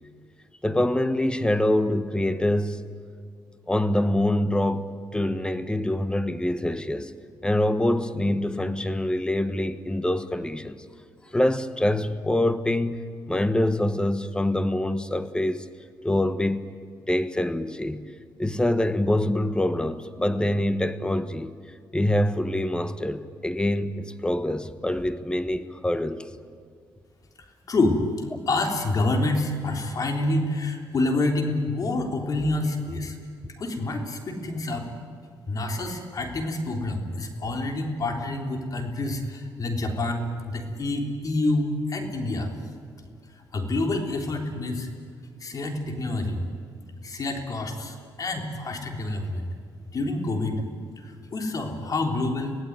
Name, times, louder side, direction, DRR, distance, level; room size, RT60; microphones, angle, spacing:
voice 1, 0.6-2.9 3.7-4.9 5.1-7.1 7.4-10.8 11.3-15.6 16.0-16.7 17.1-18.1 18.4-21.5 21.9-26.2, left 1 dB, 10° left, 1.3 m, -25 dB
voice 2, 27.7-33.2 33.6-34.9 35.5-42.5 43.3-44.9 45.4-46.4 47.0-49.5 49.9-50.6 51.0-52.6, left 2 dB, 50° left, 3.5 m, -27 dB
25.5 x 17.5 x 9.5 m
cardioid pair, 90°, 8 cm